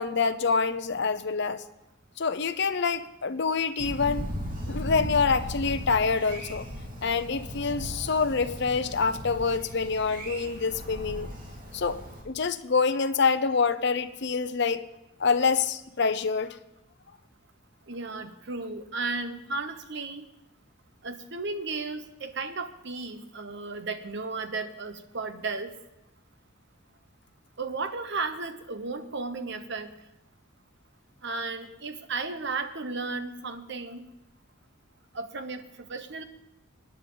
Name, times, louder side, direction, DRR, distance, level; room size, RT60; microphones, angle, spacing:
voice 1, 0.0-1.6 2.2-4.3 4.7-6.7 7.0-11.3 11.7-14.9 15.2-16.6, left 5 dB, 60° left, 10 dB, 0.7 m, -26 dB
Thunder, 3.8-12.2, equal, 45° right, 2.7 m, -37 dB
voice 2, 17.9-20.3 21.0-25.7 27.6-29.9 31.2-34.1 35.1-36.2, right 3 dB, 60° right, 9 dB, 1.1 m, -34 dB
24.0 x 10.0 x 4.0 m, 0.90 s
head